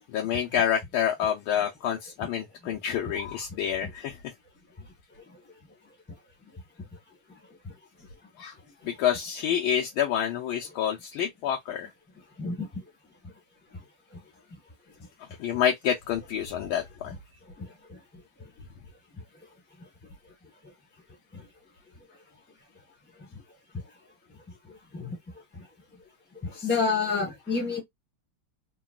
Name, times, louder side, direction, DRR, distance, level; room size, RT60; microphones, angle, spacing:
voice 1, 0.1-4.3 8.4-8.6 8.8-11.9 15.2-17.1 26.5-26.7 27.5-27.6, left 9 dB, 80° left, 1.4 m, -28 dB
voice 2, 17.6-18.0 21.3-21.5 24.9-25.2 25.5-25.6 26.4-27.8, left 4 dB, 10° left, 0.8 m, -29 dB
3.8 x 2.2 x 2.2 m
omnidirectional pair, 2.3 m